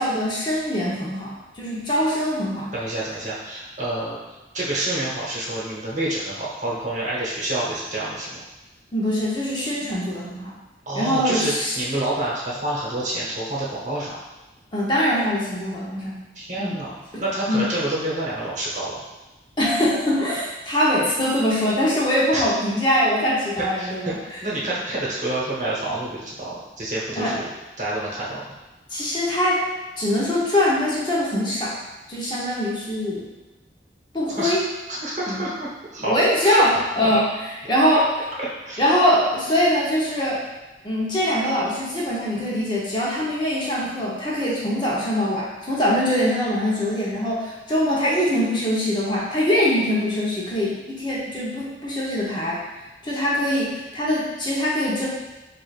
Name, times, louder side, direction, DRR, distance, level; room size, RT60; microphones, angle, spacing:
voice 1, 0.0-2.7 8.9-10.5 10.9-11.7 14.7-16.2 16.6-16.8 17.1-17.7 19.6-24.2 27.2-27.4 28.9-29.6 30.0-31.8 32.1-33.3 34.1-34.7 35.3-35.4 36.0-37.3 37.7-38.1 38.8-40.4 40.8-52.6 53.0-55.1, equal, 25° left, -6 dB, 0.8 m, -23 dB
voice 2, 2.7-4.2 4.5-8.4 10.9-14.2 16.3-19.0 22.3-22.4 23.8-24.1 24.4-27.5 27.8-28.4 34.4-34.6 34.9-36.1 36.4-36.6 37.0-37.2 38.4-38.8, right 1 dB, 45° right, -6 dB, 1.0 m, -28 dB
4.9 x 2.5 x 2.4 m, 1.1 s
head